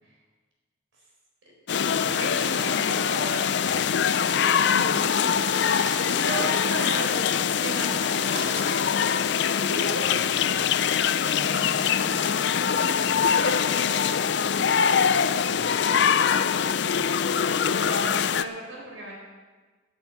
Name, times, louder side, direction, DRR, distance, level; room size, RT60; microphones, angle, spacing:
voice 1, 1.5-4.0 4.4-4.5 6.0-8.9 9.4-10.1 17.8-19.1, right 2 dB, 85° right, -2 dB, 4.3 m, -36 dB
sound 1, 1.7-18.4, left 7 dB, 60° left, 0.4 m, -23 dB
sound 2, 2.2-5.1 5.4-10.8, right 2 dB, 55° right, 2.5 m, -44 dB
voice 2, 2.5-3.2 4.5-6.1 8.2-8.9 9.8-16.5, left 1 dB, 40° right, -4 dB, 4.9 m, -42 dB
10.0 x 9.3 x 8.3 m, 1.3 s
head